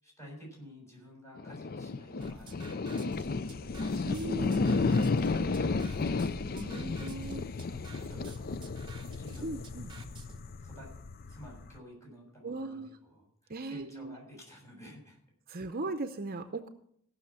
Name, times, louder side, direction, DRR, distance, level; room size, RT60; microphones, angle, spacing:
voice 1, 0.0-3.6 3.9-4.4 4.8-8.7 9.0-9.7 10.6-10.9 11.3-15.2, equal, 15° left, -2 dB, 6.7 m, -51 dB
sound 1, 1.4-11.8, left 3 dB, 45° left, 0.4 m, -33 dB
sound 2, 2.2-10.4, right 3 dB, 20° right, 1.1 m, -51 dB
voice 2, 4.0-4.7 6.5-7.5 9.4-9.9 12.4-12.9 13.5-14.2 15.5-16.7, right 2 dB, 45° right, 8 dB, 0.7 m, -38 dB
16.0 x 6.5 x 7.4 m, 0.67 s
head